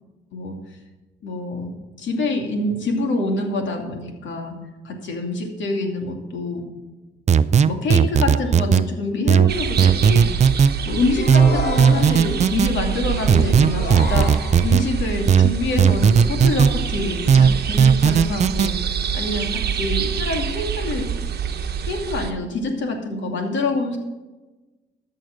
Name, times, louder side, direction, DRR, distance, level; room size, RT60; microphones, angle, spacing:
voice 1, 1.2-4.5 4.8-6.6 7.6-10.3 10.8-18.7 19.1-21.1 21.8-24.0, left 2 dB, 70° left, 3 dB, 2.6 m, -26 dB
sound 1, 7.3-8.9 9.3-10.7 11.3-12.7 13.3-14.9 15.3-16.7 17.3-18.7, right 7 dB, 35° right, 0.5 m, -15 dB
sound 2, 9.5-22.3, right 7 dB, 55° right, 1.1 m, -26 dB
sound 3, 11.2-12.5 13.6-14.9, left 3 dB, 50° left, 2.3 m, -30 dB
13.5 x 6.4 x 6.4 m, 1.1 s
cardioid pair, 90°, 20 cm